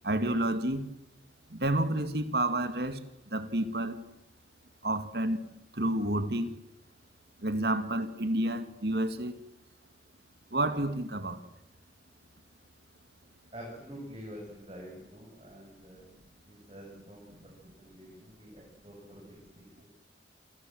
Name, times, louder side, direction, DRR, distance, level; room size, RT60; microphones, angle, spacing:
voice 1, 0.0-0.9 1.5-3.0 3.3-4.0 4.8-5.4 5.7-6.5 7.4-9.4 10.5-11.4, right 1 dB, 60° right, 2.3 m, -29 dB
voice 2, 13.5-16.1 16.4-17.5 17.8-19.2, equal, 30° right, 7.8 m, -47 dB
29.0 x 26.0 x 7.9 m
head